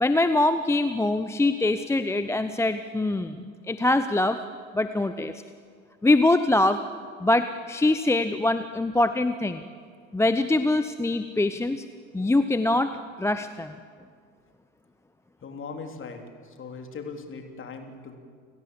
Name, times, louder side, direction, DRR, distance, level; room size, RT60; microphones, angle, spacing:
voice 1, 0.0-4.4 4.7-5.3 6.0-6.8 7.2-9.6 10.1-11.8 12.1-12.9 13.2-13.7, left 2 dB, 5° left, 10 dB, 0.7 m, -23 dB
voice 2, 15.4-18.2, left 4 dB, 30° left, 4 dB, 3.3 m, -39 dB
29.5 x 16.5 x 7.6 m, 2.1 s
figure-of-eight pair, 75°, 40 cm